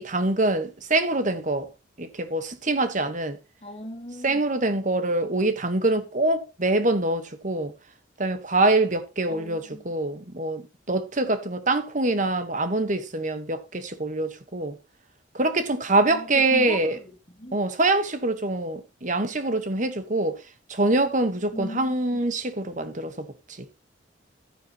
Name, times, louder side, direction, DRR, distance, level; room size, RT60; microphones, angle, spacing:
voice 1, 0.0-1.7 2.0-3.4 4.2-7.7 8.2-14.8 15.3-17.0 17.5-20.4 20.7-23.3, right 2 dB, 40° right, 1.4 m, -24 dB
voice 2, 3.6-4.4 9.3-9.8 16.1-17.6 21.5-22.2, equal, 30° left, 2.8 m, -38 dB
12.5 x 9.4 x 3.0 m
head